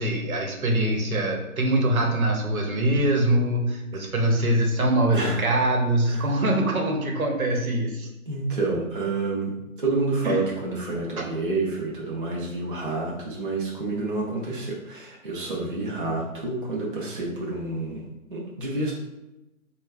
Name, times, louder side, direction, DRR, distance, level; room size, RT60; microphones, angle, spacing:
voice 1, 0.0-8.1 10.2-10.4 11.2-11.3, right 1 dB, 75° right, 1 dB, 0.9 m, -23 dB
voice 2, 5.1-5.5 6.0-6.4 8.3-18.0 18.3-18.9, right 3 dB, 40° right, -5 dB, 0.5 m, -29 dB
3.7 x 2.2 x 3.3 m, 0.99 s
hypercardioid pair, 170°, 43 cm